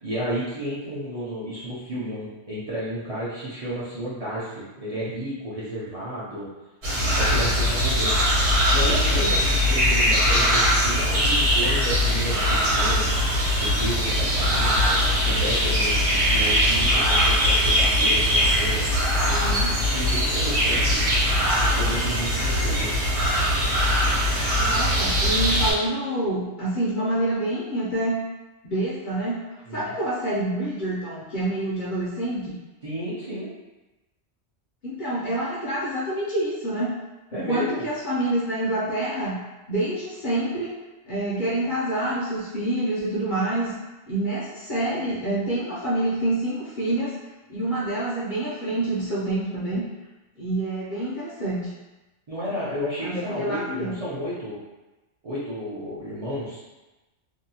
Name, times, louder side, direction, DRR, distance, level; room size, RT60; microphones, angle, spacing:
voice 1, 0.0-6.5 7.0-8.3 8.7-13.2 13.6-18.8 19.2-21.0 21.5-22.9 29.6-29.9 32.8-33.5 37.3-37.9 52.3-54.6 55.2-56.6, equal, 40° right, -10 dB, 0.5 m, -32 dB
sound 1, 6.8-25.7, equal, 65° right, 1.2 m, -21 dB
voice 2, 19.3-19.7 24.6-28.2 28.6-29.4 29.7-32.6 34.8-37.0 37.3-39.4 39.7-40.7 41.1-43.7 44.1-47.2 47.5-49.8 50.4-51.7 53.0-54.0, right 1 dB, 55° left, -7 dB, 0.6 m, -27 dB
2.7 x 2.2 x 2.7 m, 1.1 s
omnidirectional pair, 1.2 m